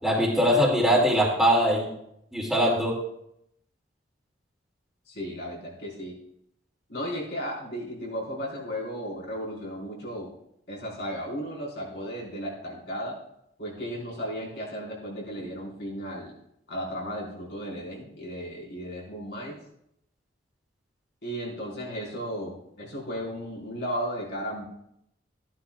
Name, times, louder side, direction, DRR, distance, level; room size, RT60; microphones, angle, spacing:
voice 1, 0.0-1.9 2.3-2.9, equal, 5° right, -4 dB, 2.5 m, -22 dB
voice 2, 5.1-6.2 6.9-10.3 10.7-13.2 13.6-16.3 16.7-19.6 21.2-24.6, equal, 70° left, -4 dB, 4.8 m, -35 dB
14.0 x 11.5 x 2.4 m, 0.76 s
head